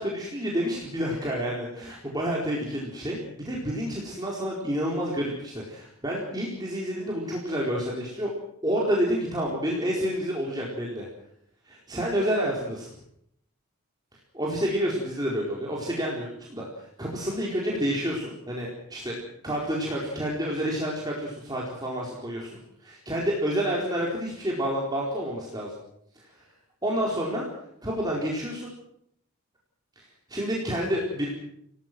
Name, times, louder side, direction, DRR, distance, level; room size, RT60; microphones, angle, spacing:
voice 1, 0.0-8.3 8.6-11.1 11.7-12.9 14.3-22.5 22.9-25.7 26.2-26.3 26.8-27.5 27.8-28.7 30.0-30.1 30.3-31.3, equal, 20° right, -3 dB, 4.4 m, -29 dB
29.0 x 18.5 x 6.2 m, 0.71 s
head